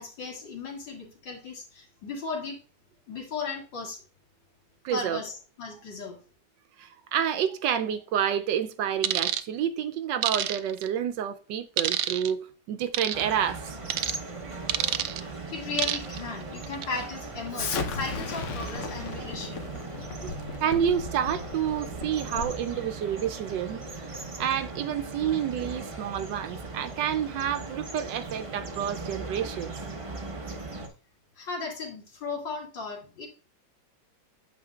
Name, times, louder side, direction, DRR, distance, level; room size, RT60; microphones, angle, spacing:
voice 1, 0.0-2.6 3.1-4.0 4.9-6.2 15.2-19.7 31.4-33.3, left 4 dB, 70° left, 2.8 m, -36 dB
voice 2, 4.8-5.2 6.8-13.8 20.2-20.3 20.6-23.8 24.4-29.7, right 9 dB, 75° right, 1.2 m, -29 dB
sound 1, 9.0-9.4 10.2-10.9 11.8-12.3 12.9-13.2 13.9-14.2 14.7-15.2 15.8-16.2 16.6-16.9, right 11 dB, 90° right, 0.7 m, -27 dB
sound 2, 13.1-30.9, right 3 dB, 50° right, 0.3 m, -39 dB
Explosion, 17.5-22.7, left 4 dB, 55° left, 0.9 m, -35 dB
8.7 x 6.4 x 2.4 m
omnidirectional pair, 2.1 m